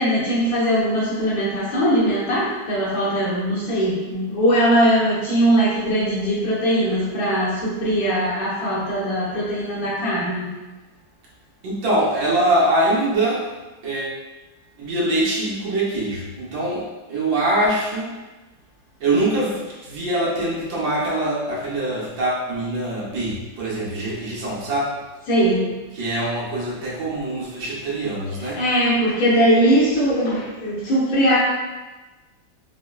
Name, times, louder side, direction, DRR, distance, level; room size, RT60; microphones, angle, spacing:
voice 1, 0.0-10.5 25.3-25.7 28.4-31.4, equal, 85° left, -8 dB, 1.8 m, -20 dB
voice 2, 11.6-13.5 13.8-14.2 14.8-18.1 19.0-24.9 25.9-28.6, right 1 dB, 75° right, -6 dB, 1.6 m, -23 dB
5.0 x 2.0 x 2.3 m, 1.2 s
omnidirectional pair, 2.1 m